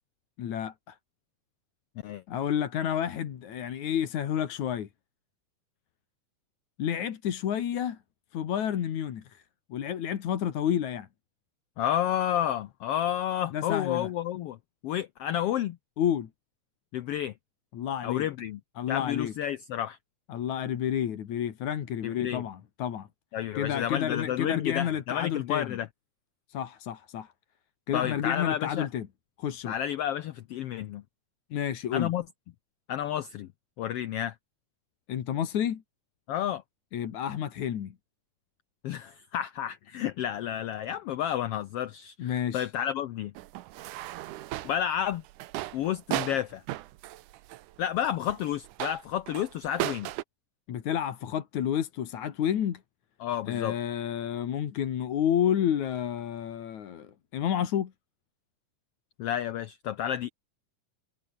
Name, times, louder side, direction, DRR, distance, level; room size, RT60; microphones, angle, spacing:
voice 1, 0.4-1.0 2.3-4.9 6.8-8.0 8.3-9.4 9.7-11.1 13.5-14.1 16.0-16.3 17.7-18.3 18.8-19.3 20.3-23.1 23.5-25.8 26.5-27.3 27.9-29.1 29.4-29.8 31.5-32.1 35.1-35.8 36.9-37.9 42.2-42.7 50.7-52.8 53.5-57.9, left 9 dB, 65° left, 3.1 m, -30 dB
voice 2, 11.8-14.6 14.8-15.8 16.9-17.3 18.0-18.6 18.9-20.0 22.0-22.4 23.3-25.9 27.9-28.9 29.7-31.0 31.9-32.2 32.9-33.5 33.8-34.3 36.3-36.6 38.8-43.3 44.6-45.2 45.7-46.6 47.8-50.1 53.2-53.7 59.2-60.3, left 11 dB, 90° left, 1.3 m, -31 dB
sound 1, 43.3-50.2, right 16 dB, 90° right, 2.4 m, -36 dB
omnidirectional pair, 3.6 m